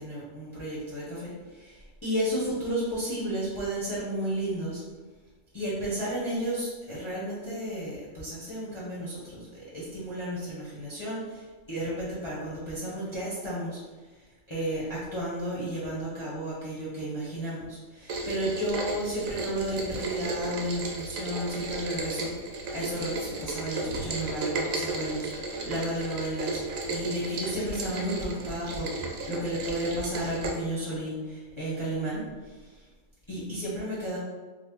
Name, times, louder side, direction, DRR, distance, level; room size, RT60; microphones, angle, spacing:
voice 1, 0.0-4.8 5.5-13.8 14.5-22.3 22.7-32.8 33.3-34.2, right 1 dB, 25° left, -9 dB, 0.7 m, -33 dB
Rain, 18.1-30.5, right 3 dB, 85° right, 1.0 m, -34 dB
3.4 x 2.0 x 3.6 m, 1.3 s
omnidirectional pair, 1.4 m